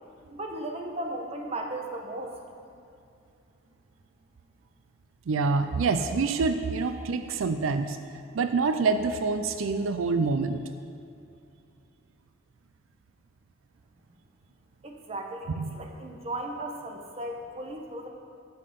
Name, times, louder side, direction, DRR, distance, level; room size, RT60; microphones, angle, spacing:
voice 1, 0.3-2.3 14.8-15.5 15.7-18.1, right 1 dB, 30° right, 2 dB, 1.0 m, -36 dB
voice 2, 5.3-8.0 8.3-10.6 15.6-15.9, right 4 dB, 85° right, 9 dB, 0.4 m, -26 dB
10.0 x 7.6 x 5.3 m, 2.5 s
head